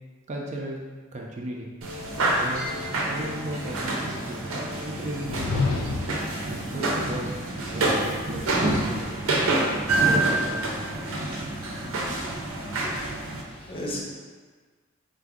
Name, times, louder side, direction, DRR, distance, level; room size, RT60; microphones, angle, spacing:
voice 1, 0.3-0.8 1.1-1.7 2.2-2.6 3.1-6.0 6.4-7.3 7.7-9.1 9.9-11.0, right 1 dB, 35° right, -1 dB, 0.4 m, -36 dB
sound 1, 1.8-13.4, right 2 dB, 80° right, 0.6 m, -27 dB
sound 2, 5.1-6.3, left 3 dB, 80° left, 0.4 m, -28 dB
voice 2, 12.8-14.0, equal, 25° left, -3 dB, 0.6 m, -37 dB
3.9 x 2.5 x 3.5 m, 1.5 s
head